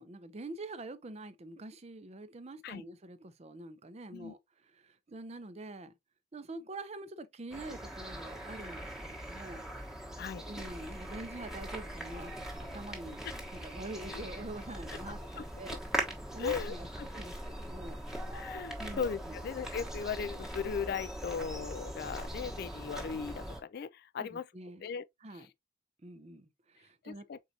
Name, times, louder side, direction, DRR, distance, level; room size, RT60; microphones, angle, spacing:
voice 1, 0.0-4.4 4.7-5.9 6.3-9.7 10.4-13.2 13.5-15.8 16.3-18.0 18.8-19.3 24.2-24.9 25.2-25.5 26.0-27.3, right 2 dB, 35° right, 0.6 m, -45 dB
sound 1, 7.5-23.6, right 1 dB, 5° right, 1.1 m, -41 dB
voice 2, 15.1-15.4 16.4-17.1 18.3-24.5 24.8-25.1 25.3-25.5 27.0-27.4, left 6 dB, 55° left, 0.3 m, -38 dB
4.6 x 4.0 x 2.7 m
head